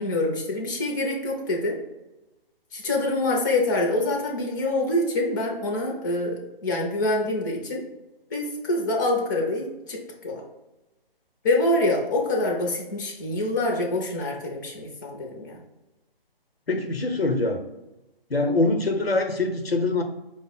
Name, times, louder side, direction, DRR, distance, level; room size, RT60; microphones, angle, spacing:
voice 1, 0.0-1.8 2.7-7.8 8.3-10.4 11.4-15.6, left 2 dB, 20° left, -1 dB, 0.5 m, -26 dB
voice 2, 16.7-17.6 18.3-20.0, left 2 dB, 90° left, 6 dB, 0.8 m, -24 dB
5.1 x 2.0 x 4.0 m, 0.98 s
figure-of-eight pair, 140°, 29 cm